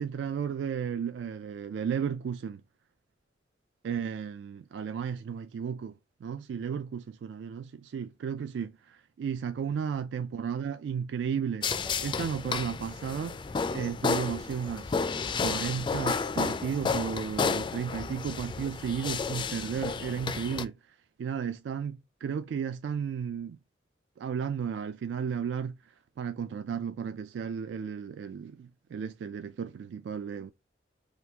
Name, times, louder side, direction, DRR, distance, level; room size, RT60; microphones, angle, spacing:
voice 1, 0.0-2.6 3.8-5.9 6.2-11.7 12.0-13.4 13.7-20.7 21.2-23.6 24.2-25.8 26.2-30.5, right 7 dB, 80° right, 0.3 m, -34 dB
sound 1, 11.6-20.6, left 5 dB, 25° left, 0.3 m, -32 dB
sound 2, 12.2-19.2, right 1 dB, 60° right, 0.8 m, -60 dB
3.7 x 2.6 x 2.7 m
head